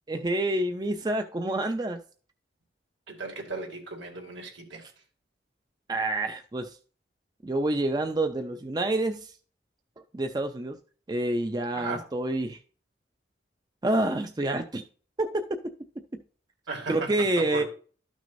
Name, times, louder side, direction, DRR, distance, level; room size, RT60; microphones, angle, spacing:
voice 1, 0.1-2.0 5.9-6.8 7.4-9.3 10.1-10.8 11.1-12.6 13.8-14.8 15.2-15.4 16.9-17.6, right 2 dB, 20° right, 0.4 m, -27 dB
voice 2, 3.1-4.9 11.7-12.0 16.7-17.6, right 3 dB, 80° right, 2.4 m, -36 dB
12.5 x 6.2 x 2.6 m
head